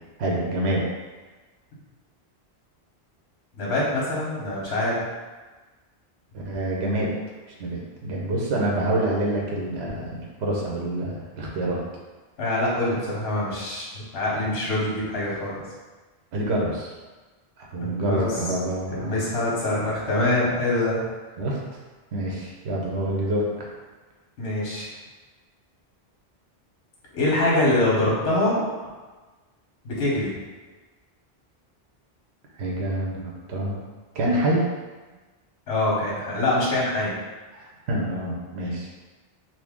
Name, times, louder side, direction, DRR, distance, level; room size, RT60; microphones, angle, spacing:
voice 1, 0.2-0.9 6.3-7.1 7.6-11.8 16.3-16.9 17.6-19.2 19.7-19.8 21.4-21.6 22.1-23.7 32.6-33.8 34.1-34.7 37.5-38.9, right 1 dB, 90° right, -3 dB, 1.0 m, -27 dB
voice 2, 3.5-5.0 12.4-15.6 17.8-18.3 18.9-21.0 24.4-24.9 27.1-28.6 29.8-30.3 35.7-37.1, left 1 dB, 80° left, -5 dB, 1.1 m, -24 dB
2.7 x 2.6 x 3.5 m, 1.3 s
omnidirectional pair, 1.1 m